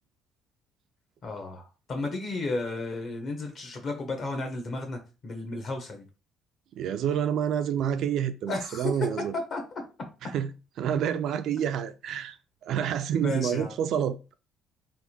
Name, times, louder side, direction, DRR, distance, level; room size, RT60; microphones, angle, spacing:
voice 1, 1.2-6.0 8.5-9.2 9.5-9.8 13.2-13.8, left 2 dB, 35° left, 1.2 m, -33 dB
voice 2, 6.7-9.3 10.3-10.5 10.8-12.4 12.6-14.3, right 9 dB, 60° right, 0.4 m, -28 dB
3.5 x 2.6 x 4.3 m
cardioid pair, 155°, 0 cm